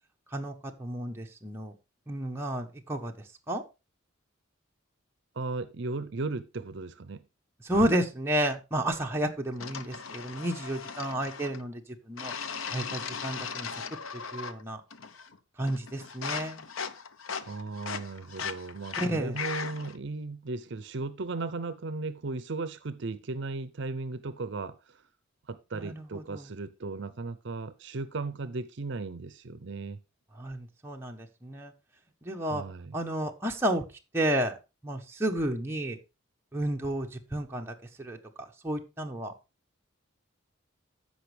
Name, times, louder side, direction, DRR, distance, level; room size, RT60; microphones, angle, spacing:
voice 1, 0.3-1.7 2.1-3.1 3.5-3.6 7.6-11.8 12.1-12.3 12.7-13.7 14.1-14.8 15.6-16.6 19.0-19.4 25.7-26.4 30.4-31.7 32.2-32.6 32.9-33.9 34.1-34.6 34.8-36.0 36.5-39.3, right 1 dB, 10° right, 1.0 m, -31 dB
voice 2, 5.3-7.2 17.4-25.0 25.5-30.0 32.4-32.9, right 3 dB, 60° right, 0.6 m, -36 dB
sound 1, 9.6-11.6 12.2-14.6 14.9-15.4 15.7-20.0, left 6 dB, 80° left, 0.8 m, -38 dB
14.5 x 5.2 x 3.3 m
head